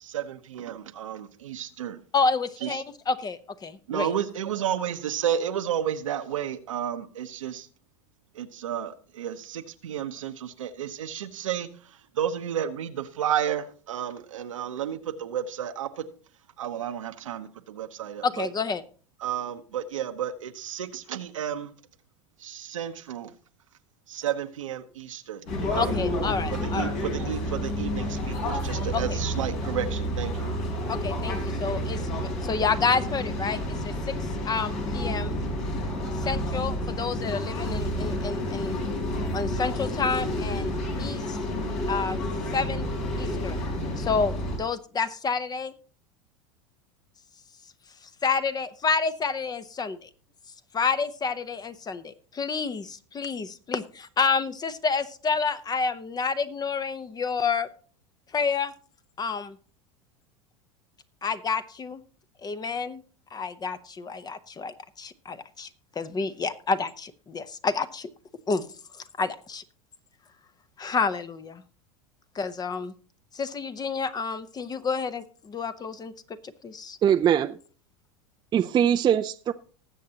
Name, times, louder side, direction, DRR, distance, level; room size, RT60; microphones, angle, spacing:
voice 1, 0.0-2.0 2.6-2.8 3.9-7.7 8.3-11.7 12.2-16.0 16.6-18.5 19.2-21.7 22.4-23.3 24.1-25.4 25.7-26.0 26.5-30.3, right 9 dB, 85° right, 1.0 m, -32 dB
voice 2, 2.1-4.1 18.2-18.8 25.8-27.0 28.9-29.2 30.9-34.1 34.4-35.3 36.2-38.8 39.3-40.7 41.0-41.4 41.9-42.2 42.5-42.9 43.2-43.6 44.0-45.7 48.2-50.1 50.7-57.7 58.3-58.7 59.2-59.6 61.2-62.0 62.4-63.0 63.3-65.7 66.0-68.1 68.5-68.6 69.2-69.6 70.8-71.6 72.3-72.9 73.3-76.1 76.6-77.0, left 5 dB, 25° left, 0.9 m, -29 dB
sound 1, 25.5-44.6, left 1 dB, 60° left, 4.5 m, -30 dB
voice 3, 77.0-77.6 78.5-79.5, right 9 dB, 30° right, 0.5 m, -22 dB
19.5 x 7.5 x 2.9 m
hypercardioid pair, 90°, 16 cm